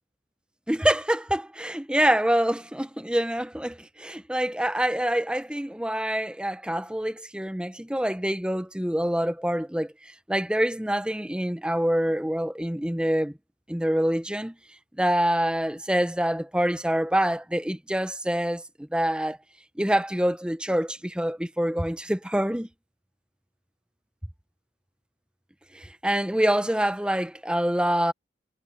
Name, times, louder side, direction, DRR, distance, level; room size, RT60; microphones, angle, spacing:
voice 1, 0.7-9.9 10.3-13.3 13.7-14.5 15.0-18.6 18.9-19.4 19.8-22.7 25.7-28.1, right 1 dB, 5° right, 0.8 m, -26 dB
head